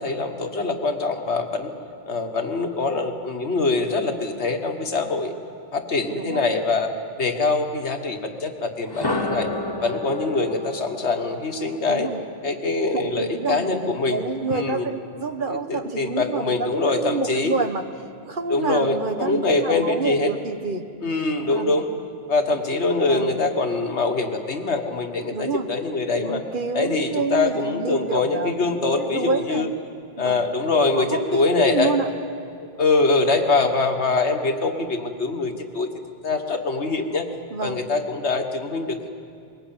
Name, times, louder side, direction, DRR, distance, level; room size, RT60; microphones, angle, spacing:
voice 1, 0.0-1.7 2.1-5.3 5.7-6.9 7.2-9.5 9.8-12.1 12.4-14.2 14.5-14.9 15.5-17.5 18.5-20.3 21.0-21.9 22.3-26.4 26.7-29.7 30.2-31.9 32.6-35.9 36.2-37.3 37.6-39.1, left 3 dB, 90° left, 5 dB, 1.9 m, -23 dB
voice 2, 6.1-6.5 11.8-12.2 12.9-17.8 18.3-20.8 21.4-21.8 23.1-23.3 25.3-25.7 26.1-29.7 30.2-30.4 30.9-32.1 37.5-37.8, right 4 dB, 50° right, 8 dB, 1.3 m, -28 dB
sound 1, 8.8-12.8, left 2 dB, 20° left, 1.2 m, -31 dB
22.0 x 18.5 x 8.9 m, 2.4 s
omnidirectional pair, 1.1 m